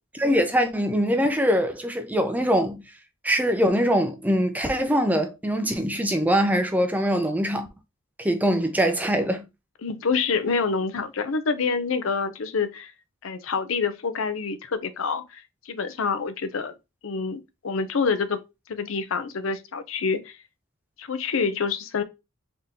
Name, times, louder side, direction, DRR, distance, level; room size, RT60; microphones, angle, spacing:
voice 1, 0.1-2.8 3.2-7.7 8.2-9.4, equal, 10° right, 0.4 m, -23 dB
voice 2, 9.8-12.9 13.2-16.7 17.0-18.4 18.7-20.4 21.0-22.0, left 5 dB, 70° left, 0.6 m, -27 dB
3.7 x 3.7 x 2.8 m
head